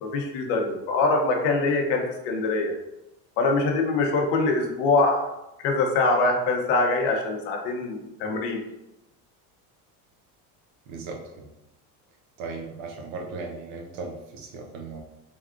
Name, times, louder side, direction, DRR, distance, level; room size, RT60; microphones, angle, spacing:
voice 1, 0.0-2.7 3.4-5.3 5.6-8.6, left 3 dB, 70° left, 3 dB, 0.8 m, -23 dB
voice 2, 10.9-11.5 12.4-15.0, right 3 dB, 80° right, 2 dB, 0.8 m, -37 dB
3.4 x 2.3 x 2.4 m, 0.92 s
cardioid pair, 160°, 44 cm